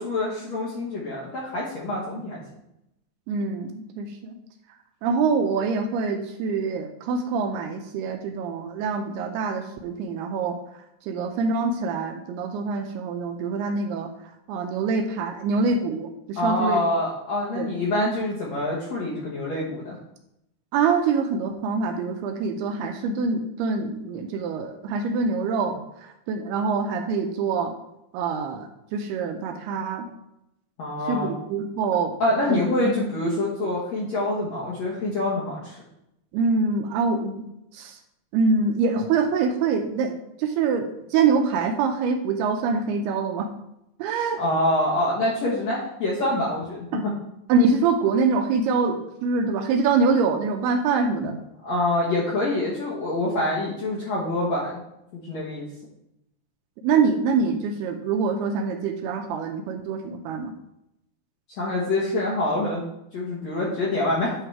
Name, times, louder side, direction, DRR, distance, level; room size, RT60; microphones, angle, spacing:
voice 1, 0.0-2.4 16.3-19.9 30.8-31.3 32.2-35.8 44.4-47.1 51.6-54.8 55.1-55.7 61.6-62.8 63.1-64.3, left 1 dB, 65° left, -6 dB, 1.7 m, -26 dB
voice 2, 3.3-4.4 5.0-10.6 11.1-14.1 14.5-16.8 17.6-17.7 20.7-27.7 28.1-30.1 31.1-32.2 32.5-32.9 36.3-37.5 37.7-38.0 38.3-43.5 44.0-44.4 47.5-51.4 56.8-60.5, right 4 dB, 80° right, 5 dB, 2.5 m, -25 dB
9.6 x 3.9 x 4.6 m, 0.83 s
omnidirectional pair, 4.9 m